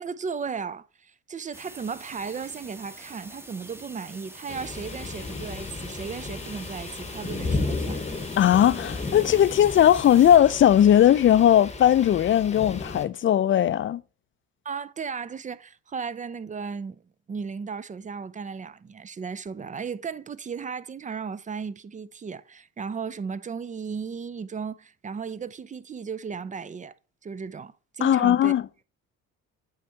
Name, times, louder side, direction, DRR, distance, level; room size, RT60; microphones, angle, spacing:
voice 1, 0.0-8.0 14.7-17.0 17.3-26.9 27.2-28.5, right 5 dB, 25° right, 0.4 m, -35 dB
sound 1, 1.5-10.4, right 1 dB, 10° right, 0.8 m, -46 dB
sound 2, 4.5-13.0, left 3 dB, 20° left, 0.9 m, -34 dB
voice 2, 8.4-14.0 28.0-28.6, left 10 dB, 40° left, 0.4 m, -18 dB
8.7 x 3.5 x 4.4 m
cardioid pair, 90°, 30 cm